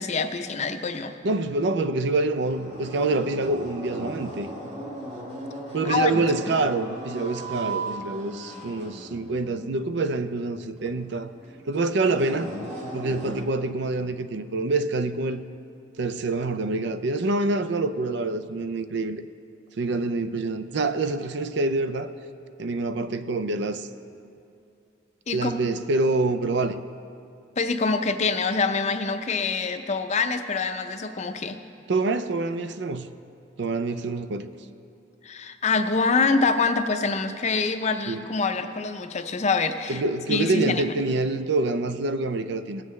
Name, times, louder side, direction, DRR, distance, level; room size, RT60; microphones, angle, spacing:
voice 1, 0.0-1.1 5.8-6.2 25.3-25.5 27.6-31.6 35.2-40.0 40.3-40.9, left 4 dB, 35° left, 8 dB, 0.5 m, -25 dB
voice 2, 1.2-4.5 5.7-11.3 11.7-12.5 12.9-15.4 16.0-19.2 19.8-22.1 22.6-23.9 25.3-26.8 31.9-33.1 33.6-34.5 38.1-38.2 39.9-42.8, right 3 dB, 65° right, 11 dB, 0.5 m, -26 dB
sound 1, 2.4-13.4, right 2 dB, 35° right, 1.5 m, -37 dB
19.0 x 7.5 x 3.2 m, 2.6 s
head